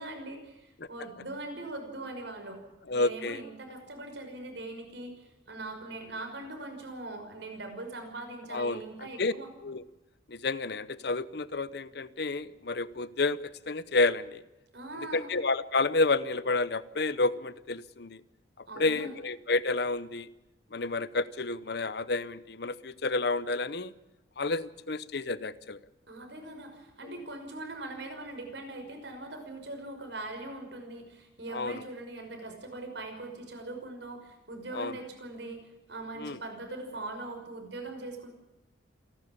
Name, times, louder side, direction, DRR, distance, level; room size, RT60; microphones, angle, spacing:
voice 1, 0.0-2.6 2.9-9.5 14.7-15.3 18.7-19.1 26.1-35.6 35.9-38.3, right 2 dB, 65° right, 4 dB, 5.8 m, -41 dB
voice 2, 2.9-3.4 8.5-8.8 9.2-9.3 9.6-9.8 10.3-13.4 13.7-14.4 15.1-18.2 18.6-20.3 20.7-23.9 24.4-25.8 31.5-31.8 34.7-35.0 36.2-36.4, left 3 dB, 60° left, 17 dB, 0.8 m, -30 dB
28.5 x 12.0 x 8.7 m, 1.0 s
head